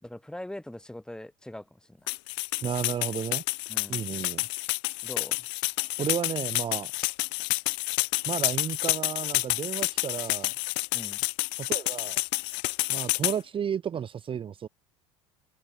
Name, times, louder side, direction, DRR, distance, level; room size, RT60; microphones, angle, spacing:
voice 1, 0.0-2.1 3.7-4.0 5.0-5.5 10.9-11.2, left 1 dB, 5° left, 5.2 m, -42 dB
sound 1, 2.1-13.4, left 34 dB, 60° left, 0.5 m, -29 dB
voice 2, 2.6-3.4 3.9-4.4 6.0-7.1 8.3-10.5 11.6-12.2 12.9-14.7, right 8 dB, 30° right, 1.2 m, -32 dB
hypercardioid pair, 75°, 18 cm